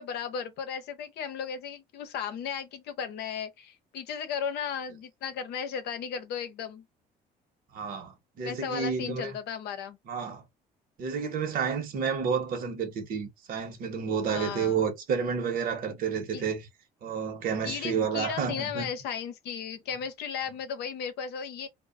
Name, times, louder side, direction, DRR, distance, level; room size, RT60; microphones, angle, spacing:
voice 1, 0.0-6.8 8.4-10.0 14.3-14.8 16.3-16.4 17.6-21.7, left 7 dB, 75° left, 0.7 m, -35 dB
voice 2, 7.7-9.4 10.1-10.4 11.0-16.6 17.0-18.9, right 6 dB, 55° right, 0.9 m, -30 dB
2.1 x 2.1 x 3.6 m
cardioid pair, 110°, 17 cm